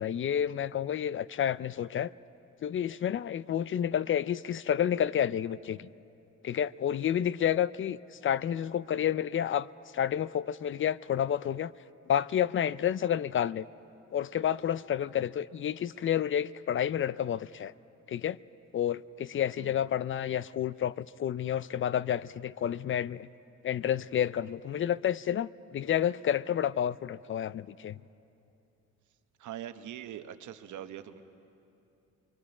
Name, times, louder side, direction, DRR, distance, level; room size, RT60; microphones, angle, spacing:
voice 1, 0.0-2.1 2.6-5.9 6.4-8.0 8.2-9.7 9.9-11.7 12.1-13.7 14.1-17.7 18.1-18.4 18.7-23.3 23.6-27.9, left 10 dB, 45° left, 0.4 m, -30 dB
voice 2, 29.4-31.2, right 10 dB, 75° right, 1.0 m, -42 dB
29.0 x 23.0 x 4.9 m
cardioid pair, 90°, 30 cm